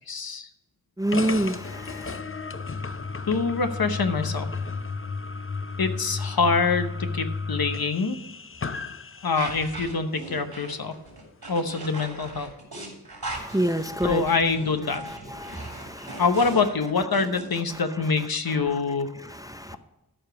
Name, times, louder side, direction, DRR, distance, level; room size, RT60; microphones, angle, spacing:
voice 1, 0.1-0.5 3.3-4.5 5.8-8.2 9.2-10.9 11.5-12.5 14.0-15.0 16.2-19.1, left 4 dB, 70° left, 8 dB, 1.0 m, -25 dB
voice 2, 1.0-2.2 13.3-14.2 14.9-16.2 18.7-18.8 19.2-19.8, right 1 dB, 10° right, 10 dB, 0.5 m, -28 dB
sound 1, 1.1-9.9, left 4 dB, 35° left, 0.6 m, -33 dB
sound 2, 9.4-17.6, right 2 dB, 75° right, 3.2 m, -39 dB
13.0 x 5.0 x 5.7 m, 0.94 s
wide cardioid pair, 50°, 38 cm